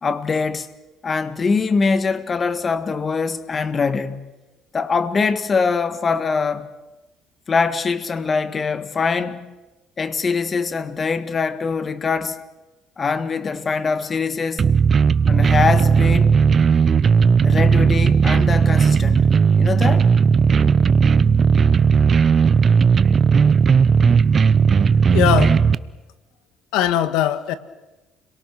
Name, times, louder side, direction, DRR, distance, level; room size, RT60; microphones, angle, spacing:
voice 1, 0.0-0.7 1.0-4.3 4.7-6.7 7.5-9.5 10.0-12.4 13.0-14.7 15.3-16.3 17.4-19.3 19.6-20.1, left 5 dB, 30° left, 1.7 m, -23 dB
sound 1, 14.6-25.8, right 6 dB, 35° right, 0.8 m, -15 dB
voice 2, 25.1-25.6 26.7-27.5, left 11 dB, 85° left, 1.7 m, -20 dB
30.0 x 23.0 x 6.2 m
cardioid pair, 110°, 0 cm